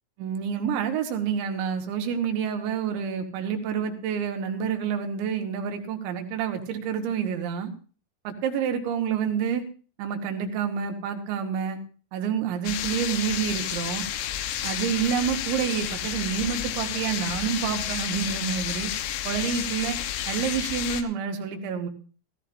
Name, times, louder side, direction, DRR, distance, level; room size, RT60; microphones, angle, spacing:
voice 1, 0.2-7.7 8.3-9.6 10.0-11.8 12.1-14.0 14.6-18.9 19.3-20.0 20.3-21.9, right 7 dB, 70° right, 4 dB, 3.5 m, -28 dB
sound 1, 12.7-21.0, left 11 dB, 85° left, 3.6 m, -31 dB
15.5 x 15.5 x 2.6 m, 0.38 s
omnidirectional pair, 5.9 m